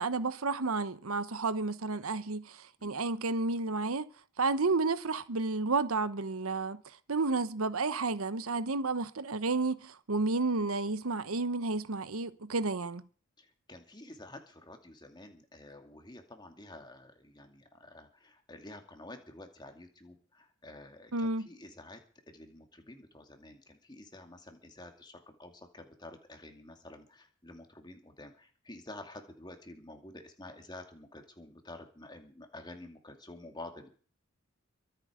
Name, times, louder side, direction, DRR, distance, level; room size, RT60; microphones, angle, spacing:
voice 1, 0.0-4.1 4.4-6.8 7.1-13.0 21.1-21.5, right 3 dB, 80° right, 1.0 m, -31 dB
voice 2, 13.4-22.0 22.3-33.9, left 2 dB, 20° left, 2.4 m, -50 dB
24.0 x 8.0 x 5.1 m
head